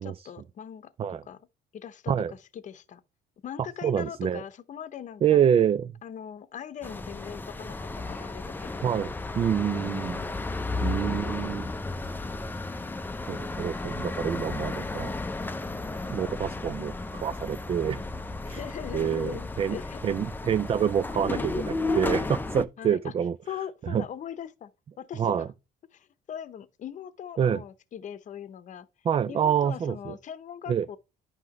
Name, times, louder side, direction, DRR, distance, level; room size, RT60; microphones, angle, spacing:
voice 1, 0.0-0.9 1.2-1.4 1.7-2.1 2.5-3.0 3.4-5.4 6.0-8.9 9.7-10.5 10.9-11.2 12.7-13.6 17.9-18.2 18.4-20.0 21.3-22.3 22.8-23.1 23.5-24.7 25.0-25.5 25.9-28.9 29.3-31.0, left 9 dB, 45° left, 0.8 m, -41 dB
voice 2, 3.8-4.4 5.2-5.9 8.8-10.2 10.8-11.6 13.3-15.1 16.1-18.0 18.5-18.6 18.9-19.8 20.0-21.4 22.0-23.3 23.9-24.0 25.2-25.5 27.4-27.6 29.0-30.1 30.7-30.9, right 8 dB, 35° right, 0.4 m, -26 dB
sound 1, 6.8-22.7, left 2 dB, 10° left, 0.6 m, -33 dB
10.5 x 5.7 x 3.0 m
cardioid pair, 110°, 17 cm